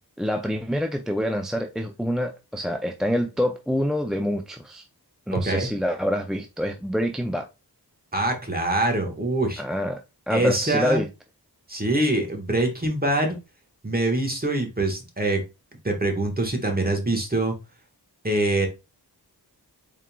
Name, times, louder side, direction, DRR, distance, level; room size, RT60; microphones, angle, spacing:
voice 1, 0.2-4.8 5.3-7.5 9.6-10.0 10.3-11.1, equal, ahead, 0.3 m, -26 dB
voice 2, 5.3-5.7 8.1-9.6 10.3-11.0 11.7-13.4 13.8-15.4 15.8-17.5 18.2-18.7, right 2 dB, 25° right, 1.3 m, -24 dB
4.2 x 3.7 x 2.2 m
wide cardioid pair, 50°, 40 cm